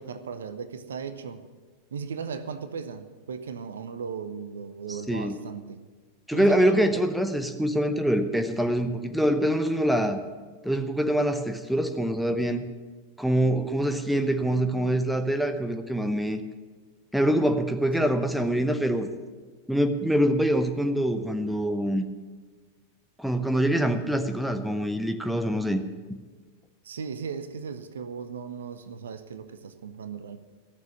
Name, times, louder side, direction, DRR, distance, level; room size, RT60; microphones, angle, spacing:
voice 1, 0.0-1.4 1.9-5.8 6.3-7.0 18.0-18.1 26.8-30.4, right 6 dB, 65° right, 11 dB, 0.8 m, -37 dB
voice 2, 4.9-5.4 6.3-10.2 10.6-12.6 13.2-16.4 17.1-19.1 19.7-22.0 23.2-25.8 26.1-26.2, right 1 dB, ahead, 7 dB, 0.9 m, -25 dB
15.0 x 6.6 x 9.8 m, 1.4 s
figure-of-eight pair, 90°, 0 cm